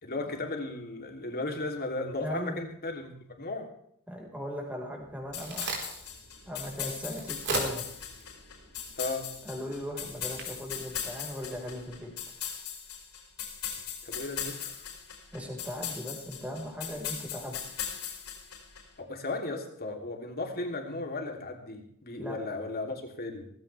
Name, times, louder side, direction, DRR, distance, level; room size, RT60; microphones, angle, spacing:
voice 1, 0.0-3.1 3.4-3.7 9.0-9.3 14.0-14.8 19.0-23.4, left 2 dB, 45° left, 3 dB, 3.1 m, -35 dB
voice 2, 2.2-2.6 4.1-5.8 6.5-7.8 9.4-12.1 15.3-17.6 22.2-22.4, equal, 5° right, 0 dB, 4.6 m, -38 dB
Crack, 5.0-11.9, right 3 dB, 55° right, 4.1 m, -41 dB
sound 1, 5.3-18.8, left 8 dB, 80° left, 5.1 m, -38 dB
18.0 x 16.0 x 3.4 m, 0.70 s
head